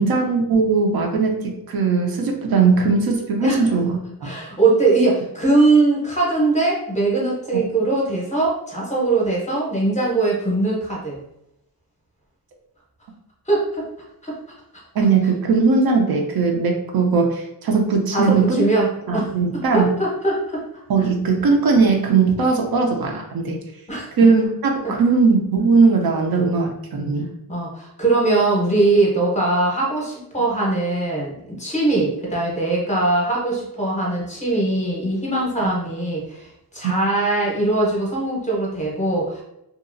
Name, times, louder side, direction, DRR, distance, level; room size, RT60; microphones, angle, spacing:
voice 1, 0.0-4.3 7.5-7.6 14.9-18.7 19.1-19.9 20.9-23.6 24.2-27.2 36.8-36.9, right 4 dB, 65° right, 2 dB, 0.6 m, -19 dB
voice 2, 4.2-11.2 13.5-13.9 14.2-14.4 18.1-20.6 21.0-21.1 23.9-24.1 24.8-24.9 27.5-39.4, right 2 dB, 20° left, -3 dB, 0.7 m, -21 dB
2.8 x 2.4 x 2.5 m, 0.85 s
wide cardioid pair, 160°, 39 cm